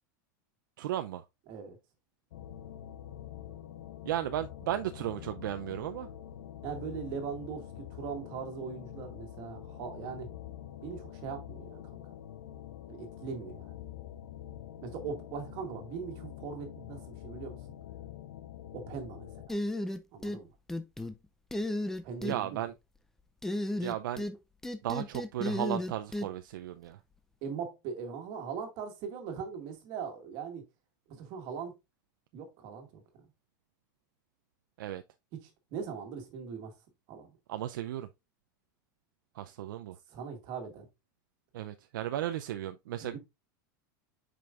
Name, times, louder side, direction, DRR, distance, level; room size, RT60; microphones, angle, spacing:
voice 1, 0.8-1.2 4.0-6.1 22.2-22.7 23.8-24.3 24.8-27.0 34.8-35.0 37.5-38.1 39.4-40.0 41.5-43.2, right 12 dB, 85° right, 0.5 m, -35 dB
voice 2, 1.5-1.8 6.6-10.3 10.8-12.0 12.9-13.7 14.8-17.6 18.7-19.6 20.1-20.5 22.0-22.7 27.4-30.6 31.1-31.7 32.3-33.0 35.3-36.7 37.1-37.3 40.1-40.9 43.0-43.2, right 6 dB, 45° right, 2.0 m, -40 dB
sound 1, 2.3-19.5, left 11 dB, 80° left, 0.7 m, -46 dB
sound 2, 19.5-20.4 20.7-21.1 21.5-22.4 23.4-24.4 24.6-26.3, left 1 dB, 5° left, 0.5 m, -33 dB
7.7 x 5.2 x 2.5 m
supercardioid pair, 155°, 11 cm